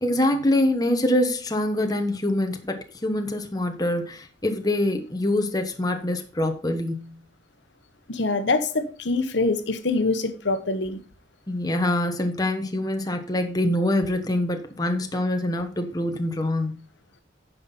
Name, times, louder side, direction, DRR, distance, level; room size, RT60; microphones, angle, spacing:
voice 1, 0.0-7.2 11.5-16.8, left 1 dB, 20° left, 5 dB, 1.1 m, -25 dB
voice 2, 8.1-11.0, left 3 dB, 75° left, 9 dB, 1.2 m, -24 dB
9.7 x 5.8 x 5.5 m, 0.38 s
head